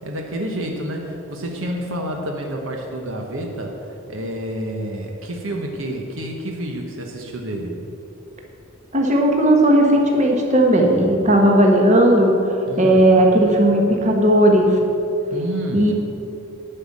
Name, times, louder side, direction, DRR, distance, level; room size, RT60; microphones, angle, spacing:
voice 1, 0.0-7.8 12.7-13.1 15.3-15.9, right 1 dB, 65° right, 1 dB, 1.1 m, -29 dB
voice 2, 8.9-12.3 12.8-14.8 15.7-15.9, right 1 dB, 35° right, 1 dB, 1.4 m, -15 dB
10.5 x 5.7 x 8.5 m, 2.8 s
head